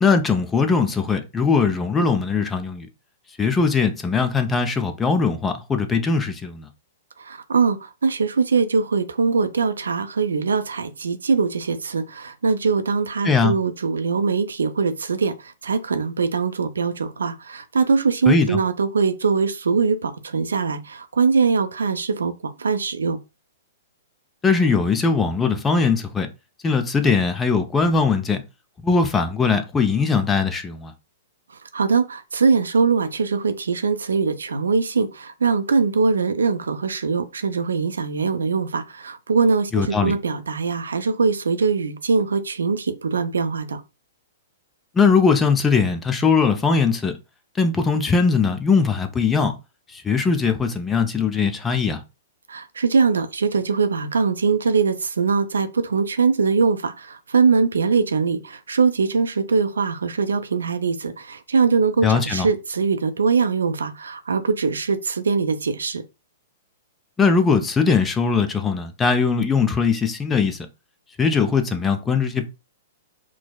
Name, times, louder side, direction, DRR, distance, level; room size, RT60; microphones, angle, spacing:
voice 1, 0.0-2.9 3.4-6.7 13.2-13.5 18.3-18.6 24.4-26.3 26.6-28.4 28.8-30.9 39.7-40.1 44.9-47.1 47.6-49.6 49.9-52.0 62.0-62.5 67.2-70.6 71.2-72.5, left 5 dB, 15° left, 0.5 m, -20 dB
voice 2, 7.2-23.2 31.5-43.8 52.5-66.0, right 5 dB, 80° right, 0.4 m, -22 dB
4.6 x 2.0 x 2.2 m
hypercardioid pair, 120°, 0 cm